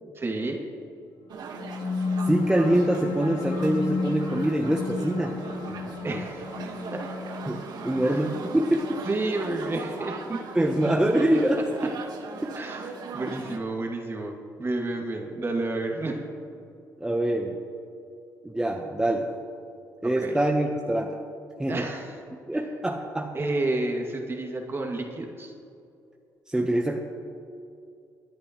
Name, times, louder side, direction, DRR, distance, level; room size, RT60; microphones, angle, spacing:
voice 1, 0.0-0.6 6.0-6.5 6.9-7.1 8.0-8.2 9.1-11.4 11.8-11.9 12.5-16.2 20.0-20.4 21.7-22.2 22.5-22.6 23.3-25.5, right 2 dB, 30° right, 1 dB, 2.4 m, -31 dB
sound 1, 1.3-13.6, right 5 dB, 65° right, 1.5 m, -39 dB
sound 2, 1.4-12.4, left 4 dB, 80° left, 1.3 m, -33 dB
voice 2, 2.2-5.4 5.7-6.0 7.5-9.0 10.5-12.0 12.4-12.5 17.0-17.6 18.4-19.3 20.0-21.1 21.6-21.8 22.5-23.3 26.5-27.0, right 1 dB, 10° right, 1 dB, 1.0 m, -25 dB
27.0 x 10.5 x 3.1 m, 2.6 s
cardioid pair, 90°, 8 cm